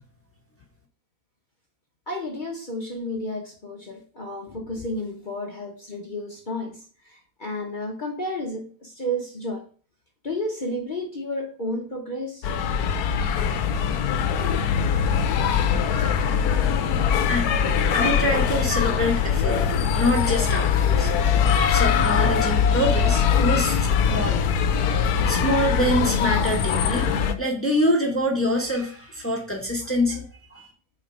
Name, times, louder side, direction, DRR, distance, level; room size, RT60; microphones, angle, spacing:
voice 1, 2.1-6.8 7.1-9.7 10.2-12.5, left 1 dB, 40° left, 0.8 m, -31 dB
sound 1, 12.4-27.3, left 7 dB, 75° left, 1.1 m, -22 dB
voice 2, 17.9-19.6 19.9-21.1 21.7-24.5 25.3-30.2 30.5-30.7, equal, 10° left, 1.1 m, -25 dB
4.4 x 4.3 x 5.0 m
omnidirectional pair, 1.7 m